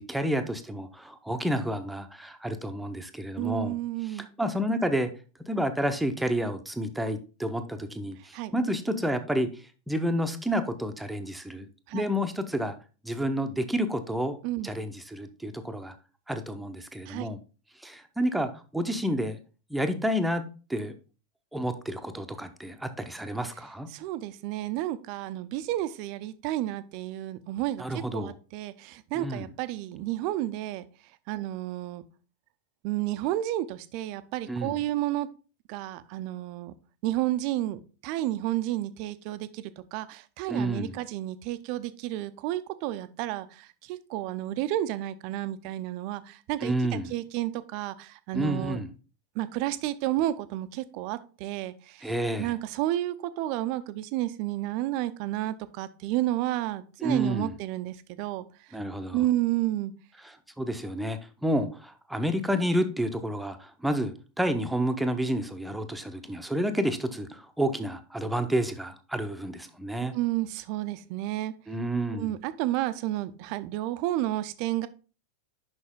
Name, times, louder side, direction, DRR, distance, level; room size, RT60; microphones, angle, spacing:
voice 1, 0.0-3.8 4.0-5.1 5.5-11.7 11.9-12.8 13.0-14.4 14.6-16.0 16.3-17.4 17.8-19.4 19.7-20.4 20.7-20.9 21.5-23.9 27.8-28.4 29.1-29.5 34.5-34.9 40.5-41.0 46.6-47.1 48.3-48.9 52.0-52.6 57.0-57.6 58.7-59.3 60.2-70.1 71.7-72.4, equal, 5° right, 7 dB, 0.8 m, -30 dB
voice 2, 3.4-4.3 8.3-8.5 11.9-12.0 14.4-14.7 17.1-17.3 23.9-27.8 28.1-30.9 31.3-32.0 32.8-35.3 35.7-36.7 37.0-46.7 47.1-48.8 49.4-52.0 52.4-58.4 59.1-59.9 70.1-71.5 72.2-74.9, right 14 dB, 45° right, 14 dB, 0.5 m, -31 dB
6.2 x 5.6 x 3.7 m, 0.35 s
figure-of-eight pair, 90°, 0 cm